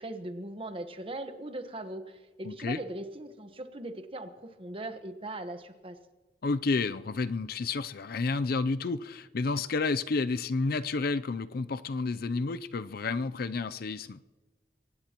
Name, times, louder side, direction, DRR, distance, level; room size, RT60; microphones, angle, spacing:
voice 1, 0.0-6.0, right 1 dB, 30° right, 7 dB, 1.2 m, -39 dB
voice 2, 2.4-2.8 6.4-14.2, left 3 dB, 60° left, 14 dB, 0.5 m, -30 dB
23.0 x 18.5 x 3.0 m, 1.3 s
head